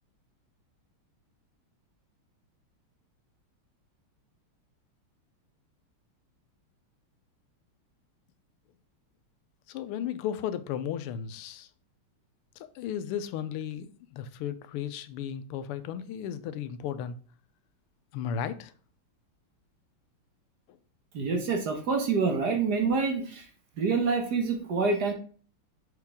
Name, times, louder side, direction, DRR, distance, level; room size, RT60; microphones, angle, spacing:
voice 1, 9.7-11.7 12.6-17.1 18.1-18.7, left 9 dB, 90° left, 1.6 m, -35 dB
voice 2, 21.1-23.5 23.8-25.1, right 4 dB, 55° right, 1.5 m, -27 dB
6.7 x 4.8 x 3.5 m
omnidirectional pair, 2.4 m